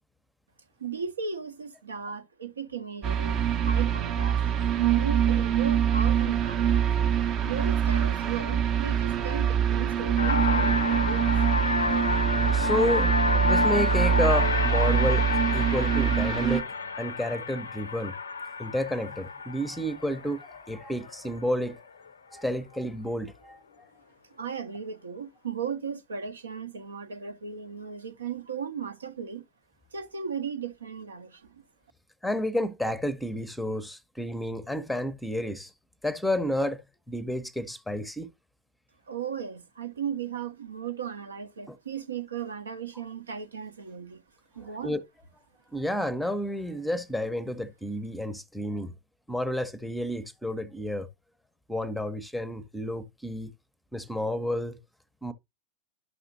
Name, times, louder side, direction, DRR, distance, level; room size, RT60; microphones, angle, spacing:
voice 1, 0.8-6.9 7.4-11.4 24.3-29.4 29.9-31.6 39.1-44.2 44.5-45.0, right 7 dB, 70° right, 0.7 m, -36 dB
sound 1, 3.0-16.6, right 9 dB, 35° right, 0.6 m, -25 dB
sound 2, 10.2-21.8, left 4 dB, 75° left, 0.5 m, -29 dB
voice 2, 12.5-13.1 13.4-18.1 18.6-21.8 22.3-23.9 32.2-35.7 36.0-36.8 37.1-38.3 41.7-41.8 44.8-45.0 45.7-48.9 49.3-51.1 51.7-53.5 53.9-54.8 55.2-55.3, left 1 dB, 5° left, 0.7 m, -31 dB
11.0 x 5.9 x 2.7 m
figure-of-eight pair, 90°, 0 cm